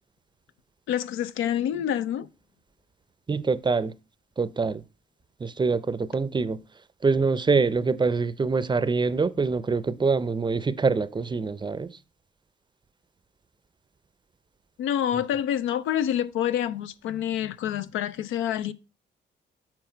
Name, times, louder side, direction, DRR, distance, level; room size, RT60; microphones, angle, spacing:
voice 1, 0.9-2.3 14.8-18.7, left 10 dB, 85° left, 0.5 m, -27 dB
voice 2, 3.3-3.9 4.4-4.8 5.4-6.6 7.0-12.0, right 4 dB, 25° right, 0.5 m, -25 dB
7.9 x 4.5 x 4.4 m
cardioid pair, 90°, 20 cm